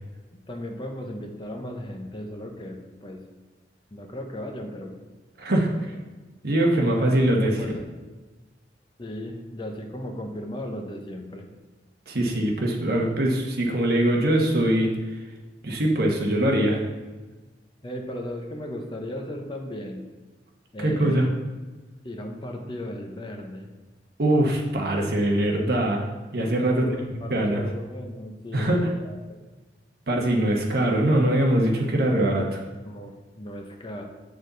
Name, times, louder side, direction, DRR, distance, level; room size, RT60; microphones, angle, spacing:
voice 1, 0.3-3.3 3.9-5.0 5.7-6.0 6.8-8.0 9.0-11.5 17.8-20.0 20.7-21.3 22.0-23.7 26.7-29.4 32.8-34.0, left 1 dB, 30° left, 3 dB, 0.9 m, -36 dB
voice 2, 5.4-5.8 6.4-7.5 12.1-15.0 15.6-16.8 20.8-21.3 24.2-26.0 26.3-26.9 27.3-27.6 28.5-28.9 30.1-32.7, right 1 dB, 60° right, 0 dB, 1.2 m, -22 dB
7.0 x 6.6 x 4.0 m, 1.2 s
head